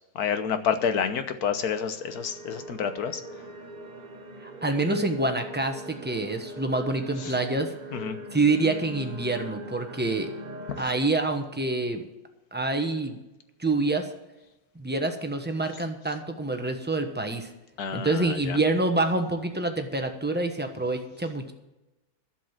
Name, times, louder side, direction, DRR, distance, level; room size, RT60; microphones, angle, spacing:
voice 1, 0.1-3.2 7.9-8.2 10.7-10.9 17.8-18.6, left 7 dB, 85° left, 9 dB, 1.5 m, -29 dB
sound 1, 1.9-10.8, right 1 dB, 30° right, 1.1 m, -41 dB
voice 2, 4.4-7.7 8.3-10.3 10.8-12.0 12.5-13.2 13.6-14.1 14.7-17.5 17.9-21.5, right 2 dB, 10° right, 5 dB, 1.0 m, -27 dB
11.5 x 7.5 x 7.5 m, 1.0 s
omnidirectional pair, 1.6 m